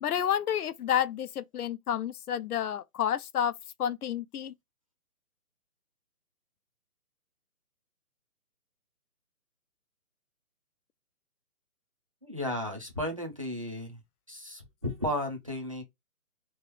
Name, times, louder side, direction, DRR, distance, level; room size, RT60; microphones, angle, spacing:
voice 1, 0.0-3.5 3.8-4.5, left 9 dB, 80° left, 0.6 m, -30 dB
voice 2, 12.2-14.0 14.3-15.8, left 1 dB, 25° right, 0.5 m, -34 dB
3.0 x 2.3 x 3.2 m
hypercardioid pair, 165°, 44 cm